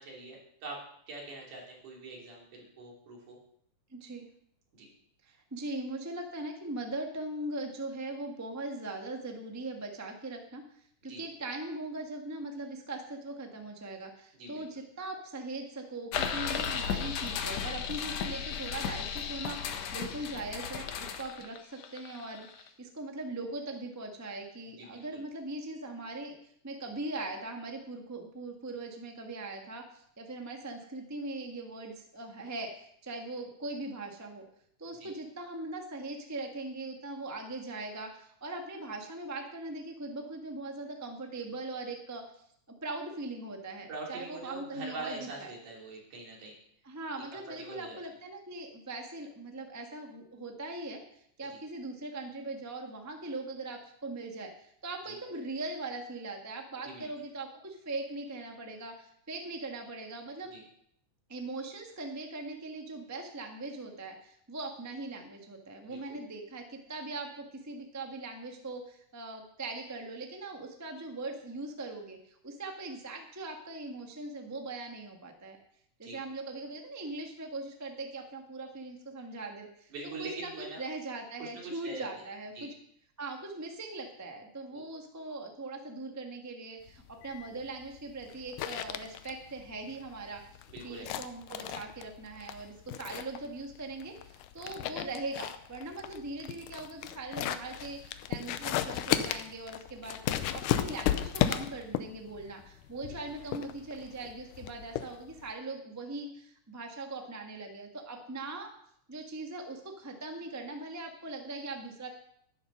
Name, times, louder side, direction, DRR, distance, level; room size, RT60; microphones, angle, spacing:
voice 1, 0.0-3.4 4.7-4.9 11.1-11.2 14.3-14.7 24.8-25.2 35.0-35.1 43.9-46.6 47.3-48.0 51.5-51.6 55.0-55.2 56.8-57.1 60.5-60.6 65.8-66.2 76.0-76.2 79.9-80.8 81.4-82.2 82.6-82.7 84.7-84.8 90.7-91.1, right 2 dB, 80° right, -2 dB, 4.7 m, -44 dB
voice 2, 3.9-4.3 5.2-10.6 11.0-26.4 26.6-34.4 34.8-42.2 42.8-45.5 46.8-51.0 51.4-60.5 61.3-75.6 76.0-79.9 80.2-82.7 83.2-90.4 90.8-108.7 109.1-112.1, right 2 dB, 10° right, 3 dB, 0.7 m, -40 dB
sound 1, 16.1-22.7, left 7 dB, 65° left, 2.0 m, -35 dB
sound 2, 86.9-105.5, left 11 dB, 85° left, 2.2 m, -35 dB
11.5 x 11.5 x 5.6 m, 0.69 s
omnidirectional pair, 3.6 m